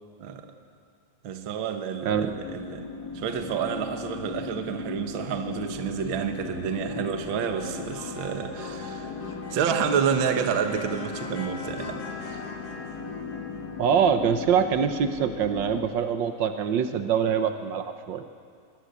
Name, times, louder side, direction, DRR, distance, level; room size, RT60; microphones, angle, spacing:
voice 1, 1.2-2.8 3.1-12.4, right 7 dB, 50° right, 6 dB, 1.8 m, -29 dB
sound 1, 2.1-15.8, left 4 dB, 40° left, 1.8 m, -37 dB
voice 2, 13.8-18.2, right 7 dB, 80° right, 8 dB, 1.0 m, -24 dB
22.0 x 22.0 x 8.3 m, 2.2 s
omnidirectional pair, 3.4 m